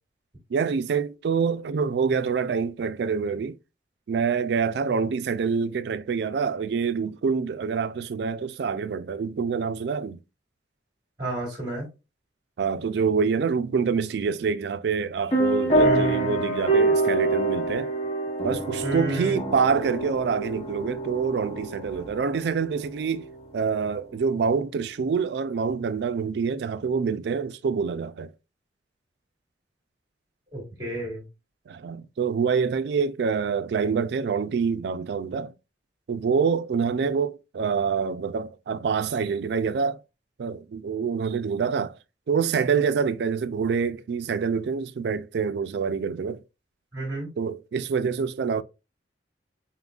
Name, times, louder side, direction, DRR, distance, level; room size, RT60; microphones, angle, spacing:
voice 1, 0.5-3.6 4.1-10.2 12.6-17.9 18.4-23.3 23.5-28.3 31.7-35.5 36.1-40.0 40.4-42.0 42.3-46.4 47.4-48.6, right 5 dB, 65° right, 0.3 m, -26 dB
voice 2, 11.2-11.9 15.8-16.4 18.8-19.4 30.5-31.2 46.9-47.3, right 2 dB, 25° right, 1.8 m, -31 dB
sound 1, 15.3-23.4, right 2 dB, 35° left, 0.8 m, -26 dB
4.3 x 3.7 x 2.3 m
head